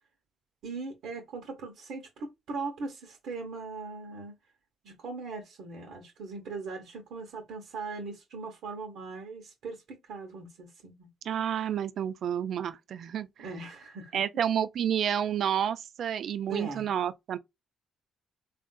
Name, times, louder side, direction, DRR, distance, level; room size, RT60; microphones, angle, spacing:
voice 1, 0.6-4.3 4.8-11.1 13.4-14.2 16.5-16.9, right 4 dB, 80° right, 0.9 m, -40 dB
voice 2, 11.2-13.3 14.1-17.4, right 9 dB, 65° right, 0.4 m, -30 dB
3.6 x 2.5 x 2.2 m
cardioid pair, 90°, 0 cm